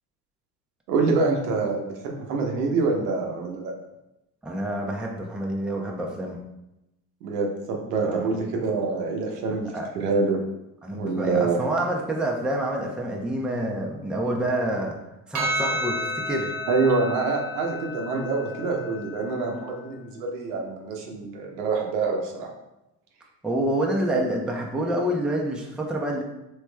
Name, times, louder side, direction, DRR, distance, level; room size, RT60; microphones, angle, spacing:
voice 1, 0.9-3.7 7.2-10.4 10.9-11.6 16.7-22.5, right 4 dB, 85° right, 1 dB, 0.7 m, -26 dB
voice 2, 4.4-6.4 8.0-8.5 9.7-9.9 10.8-15.0 15.3-16.5 23.4-26.2, right 1 dB, ahead, -1 dB, 0.5 m, -27 dB
Percussion, 15.3-20.0, equal, 45° right, 0.8 m, -32 dB
3.2 x 3.1 x 2.2 m, 0.91 s
hypercardioid pair, 65°, 44 cm